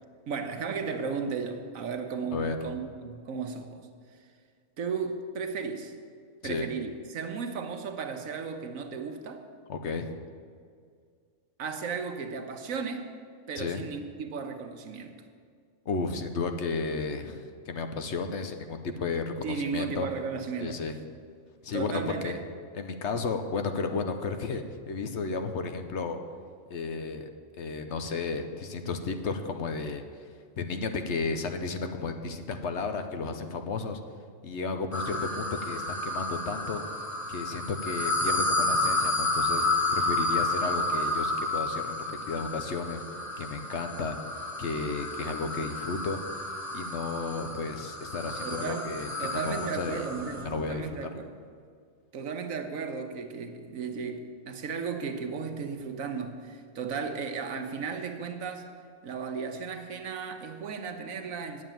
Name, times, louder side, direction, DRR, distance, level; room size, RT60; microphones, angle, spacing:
voice 1, 0.3-3.8 4.8-5.9 6.4-9.5 11.6-13.1 13.5-15.1 19.4-20.8 21.7-22.4 48.4-48.9 49.2-51.3 52.1-58.7 59.0-61.6, right 5 dB, 80° right, 6 dB, 1.4 m, -35 dB
voice 2, 9.7-10.1 13.6-13.8 15.9-20.1 20.6-21.0 21.6-22.4 22.7-26.2 26.7-27.3 27.6-30.0 30.6-34.0 34.4-36.8 37.3-43.0 43.4-44.2 44.6-46.2 46.7-50.1 50.4-51.1, left 4 dB, 60° left, 7 dB, 1.0 m, -33 dB
sound 1, 34.9-50.5, left 2 dB, 15° left, 1.1 m, -31 dB
9.2 x 7.3 x 9.1 m, 2.1 s
omnidirectional pair, 1.4 m